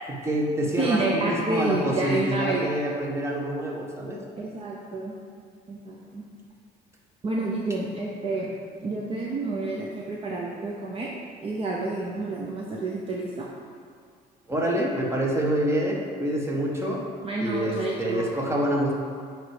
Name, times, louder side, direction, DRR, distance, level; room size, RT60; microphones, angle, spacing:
voice 1, 0.1-4.2 14.5-17.0 17.4-18.9, right 1 dB, 15° right, -2 dB, 1.2 m, -26 dB
voice 2, 0.8-2.7 4.4-5.1 5.7-6.2 7.2-8.5 8.8-11.1 11.4-13.5 17.2-18.3, right 2 dB, 35° right, -2 dB, 0.7 m, -29 dB
8.9 x 3.3 x 4.8 m, 2.1 s
cardioid pair, 110°, 17 cm